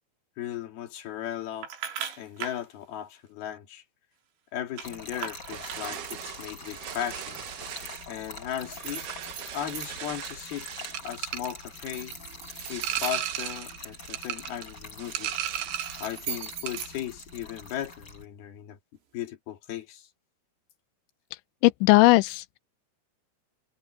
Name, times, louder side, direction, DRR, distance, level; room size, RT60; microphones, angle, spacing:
voice 1, 0.4-1.7 2.2-3.8 4.5-7.4 8.1-9.1 9.5-10.7 11.0-12.2 12.7-15.3 15.7-15.8 16.0-18.8 19.1-20.1, left 11 dB, 55° left, 3.6 m, -36 dB
sound 1, 1.6-2.7 4.8-6.4 8.6-10.2 10.6-11.1 11.7-14.0 15.6-17.7, right 8 dB, 85° right, 6.5 m, -40 dB
Trickle dribble / Fill (with liquid), 4.8-18.3, left 3 dB, 20° left, 5.9 m, -44 dB
sound 2, 5.5-16.2 16.5-17.0, right 12 dB, 65° right, 2.8 m, -37 dB
voice 2, 21.6-22.6, left 22 dB, 85° left, 2.6 m, -19 dB
omnidirectional pair, 5.8 m